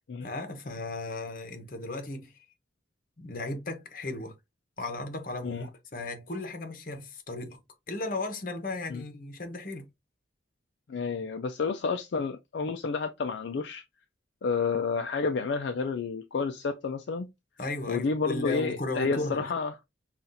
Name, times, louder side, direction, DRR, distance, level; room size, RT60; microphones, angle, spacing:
voice 1, 0.2-2.5 3.2-4.3 4.8-7.6 7.9-9.8 17.6-19.5, left 2 dB, 45° left, 1.0 m, -35 dB
voice 2, 10.9-13.8 14.4-17.3 17.9-19.7, left 4 dB, 70° left, 0.4 m, -30 dB
5.6 x 2.4 x 2.6 m
head